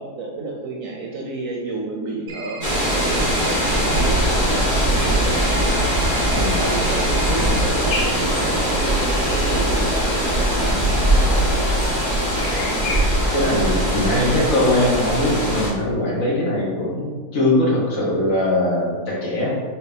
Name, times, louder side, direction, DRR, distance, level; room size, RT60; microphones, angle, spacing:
voice 1, 0.0-5.7 6.1-11.7, right 2 dB, 70° right, -1 dB, 0.9 m, -30 dB
sound 1, 2.3-4.1 5.3-7.7, right 4 dB, 85° right, 0.4 m, -36 dB
sound 2, 2.6-15.7, right 1 dB, 15° left, 1.1 m, -20 dB
sound 3, 7.9-13.0, left 2 dB, 85° left, 1.6 m, -33 dB
voice 2, 13.0-19.5, left 1 dB, 65° left, -4 dB, 1.5 m, -21 dB
4.4 x 3.3 x 3.3 m, 1.4 s
omnidirectional pair, 1.6 m